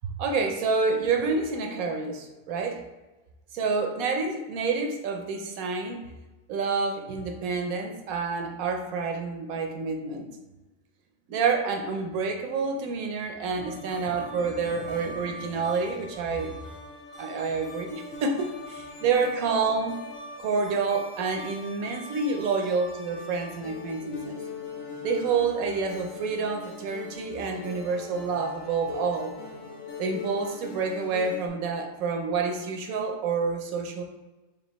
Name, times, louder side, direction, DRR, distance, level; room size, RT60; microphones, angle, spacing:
voice 1, 0.0-2.8 3.5-6.0 6.5-10.3 11.3-16.6 17.2-20.0 20.4-24.4 25.0-29.3 30.0-34.0, right 4 dB, 85° right, 4 dB, 1.1 m, -28 dB
sound 1, 13.5-31.5, left 3 dB, 75° left, 1.2 m, -41 dB
4.9 x 2.7 x 3.0 m, 1.2 s
omnidirectional pair, 1.4 m